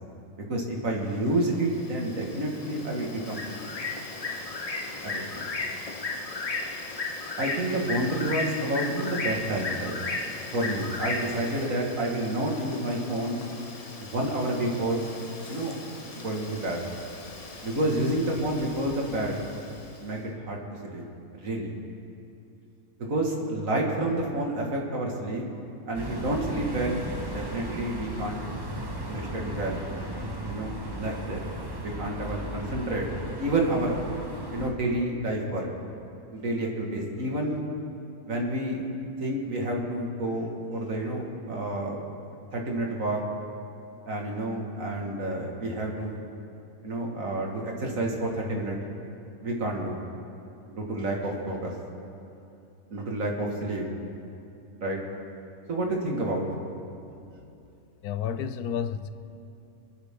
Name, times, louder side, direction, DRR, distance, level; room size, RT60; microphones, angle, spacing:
voice 1, 0.4-3.5 5.0-5.4 7.4-10.0 10.5-13.4 14.0-15.0 15.5-15.8 16.1-16.8 17.6-19.4 20.0-21.1 21.4-21.7 23.1-25.4 25.9-27.0 27.3-28.4 29.1-29.8 30.5-31.4 31.8-33.1 33.4-34.0 34.5-35.7 36.3-37.6 38.2-38.9 39.2-42.0 42.5-43.2 44.1-46.2 46.8-48.8 49.4-50.0 50.7-51.7 52.9-53.8 54.8-55.0 55.7-56.5, right 1 dB, 60° right, -1 dB, 2.3 m, -29 dB
Bird, 1.3-20.0, left 3 dB, 30° left, 0.8 m, -36 dB
sound 1, 25.9-34.7, right 1 dB, 15° right, 1.2 m, -36 dB
voice 2, 58.0-59.1, left 8 dB, 85° left, 11 dB, 1.2 m, -30 dB
27.5 x 9.9 x 3.7 m, 2.7 s
omnidirectional pair, 1.6 m